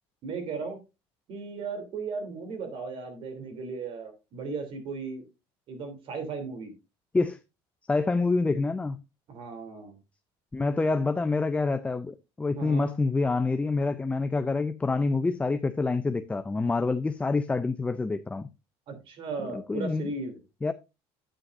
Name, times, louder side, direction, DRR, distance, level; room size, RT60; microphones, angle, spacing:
voice 1, 0.2-0.8 1.3-5.3 5.7-6.7 9.3-10.0 12.6-13.0 18.9-20.4, right 4 dB, 55° right, 3.1 m, -36 dB
voice 2, 7.9-9.0 10.5-18.5 19.4-20.1 20.6-20.7, left 3 dB, 10° left, 0.5 m, -27 dB
9.3 x 8.8 x 2.6 m
cardioid pair, 120°, 11 cm